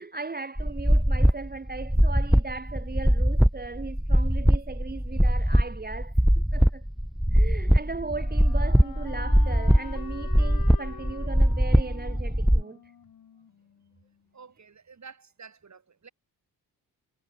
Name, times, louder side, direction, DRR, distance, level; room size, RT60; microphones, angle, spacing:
voice 1, 0.0-6.8 7.3-12.9, right 3 dB, 25° right, 1.2 m, -38 dB
sound 1, 0.6-12.6, equal, ahead, 0.5 m, -22 dB
Wind instrument woodwind instrument, 7.3-14.1, left 8 dB, 65° left, 5.5 m, -46 dB
voice 2, 14.3-16.1, right 5 dB, 45° right, 5.7 m, -49 dB
cardioid pair, 80°, 38 cm